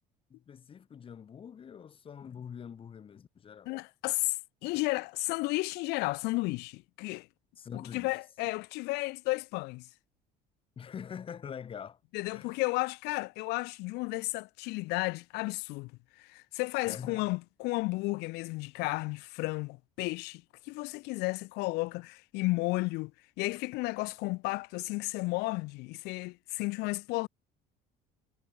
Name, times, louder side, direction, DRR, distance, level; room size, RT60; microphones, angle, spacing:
voice 1, 0.3-3.7 7.6-8.1 10.8-12.0 12.3-12.5 16.9-17.2, left 7 dB, 35° left, 1.6 m, -44 dB
voice 2, 3.6-4.4 4.6-7.3 7.7-9.9 12.1-15.9 16.2-23.1 23.4-27.3, left 24 dB, 85° left, 1.6 m, -33 dB
cardioid pair, 125°, 16 cm